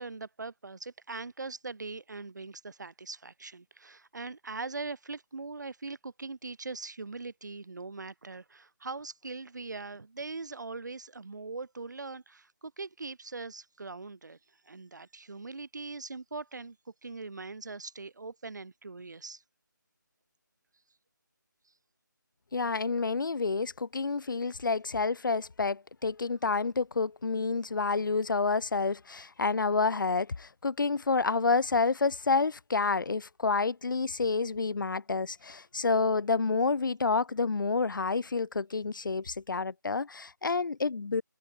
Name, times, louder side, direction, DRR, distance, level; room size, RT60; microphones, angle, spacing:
voice 1, 0.0-14.4 14.6-16.8 17.0-19.4, right 3 dB, 60° right, 1.7 m, -41 dB
voice 2, 22.5-41.2, left 4 dB, 75° left, 0.6 m, -29 dB
figure-of-eight pair, 175°, 11 cm